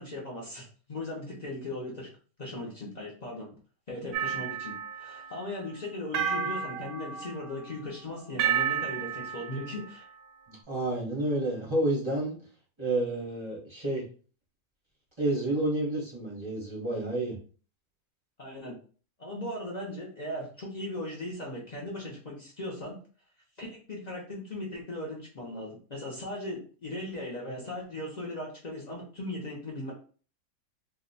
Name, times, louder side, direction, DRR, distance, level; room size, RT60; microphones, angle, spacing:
voice 1, 0.0-2.1 2.4-3.5 3.9-10.1 18.4-18.7 19.2-23.0 23.6-29.9, left 1 dB, 60° left, -4 dB, 0.4 m, -38 dB
sound 1, 4.1-5.4 6.1-7.7 8.4-9.9, right 8 dB, 85° right, 1.2 m, -31 dB
voice 2, 10.5-12.4 12.8-14.0 15.2-17.4, right 1 dB, 30° right, -3 dB, 0.6 m, -30 dB
2.7 x 2.2 x 3.9 m, 0.40 s
omnidirectional pair, 1.8 m